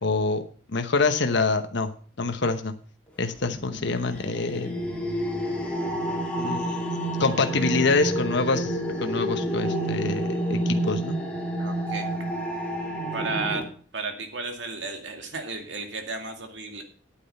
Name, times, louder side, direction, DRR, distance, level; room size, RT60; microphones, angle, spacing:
voice 1, 0.0-0.4 0.7-1.9 2.2-2.7 3.2-4.8 6.4-6.7 7.2-8.7 9.0-11.2, left 3 dB, 65° left, 7 dB, 1.0 m, -25 dB
sound 1, 3.4-13.6, right 1 dB, 5° left, 2.4 m, -29 dB
voice 2, 11.6-12.1 13.1-13.6 13.9-16.8, right 4 dB, 65° right, 4 dB, 2.3 m, -33 dB
10.0 x 8.7 x 5.4 m, 0.41 s
head